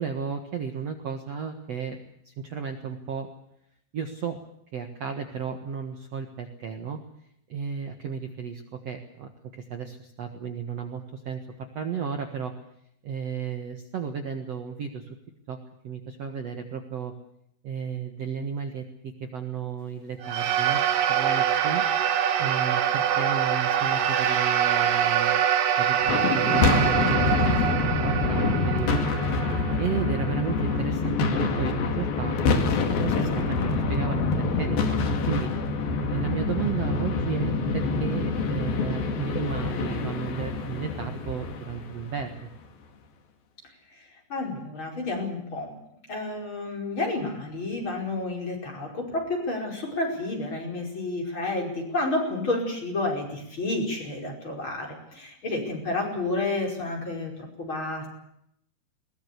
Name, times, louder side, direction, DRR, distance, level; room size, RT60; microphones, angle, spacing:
voice 1, 0.0-2.0 2.3-3.3 3.9-4.4 4.7-7.0 7.5-9.3 9.7-11.4 11.7-12.5 13.0-15.2 15.5-15.6 15.8-17.1 17.6-21.8 22.4-25.4 25.8-29.0 29.8-35.5 36.1-42.5, right 6 dB, 55° right, 5 dB, 2.2 m, -33 dB
sound 1, 20.2-30.8, right 9 dB, 70° right, 3.1 m, -25 dB
sound 2, 26.0-42.4, left 4 dB, 70° left, 4.1 m, -26 dB
voice 2, 44.3-45.7 46.1-57.3 57.6-58.1, left 2 dB, 30° left, 1 dB, 5.7 m, -30 dB
21.5 x 20.0 x 8.3 m, 0.75 s
omnidirectional pair, 4.4 m